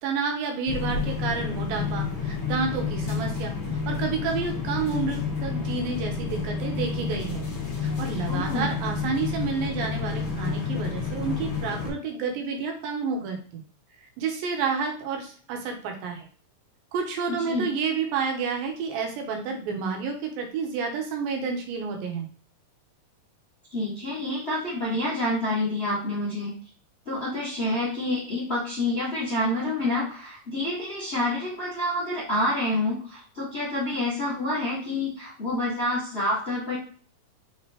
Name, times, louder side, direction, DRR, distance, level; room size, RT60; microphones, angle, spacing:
voice 1, 0.0-3.5 3.9-7.4 7.8-13.6 14.2-16.2 16.9-22.3, right 5 dB, 85° right, 2 dB, 2.6 m, -30 dB
sound 1, 0.7-11.9, left 5 dB, 85° left, 1.1 m, -30 dB
voice 2, 8.3-8.7 17.3-17.7 23.7-26.5 27.0-36.8, left 1 dB, 35° left, -8 dB, 1.1 m, -28 dB
5.6 x 3.1 x 2.9 m, 0.43 s
omnidirectional pair, 4.1 m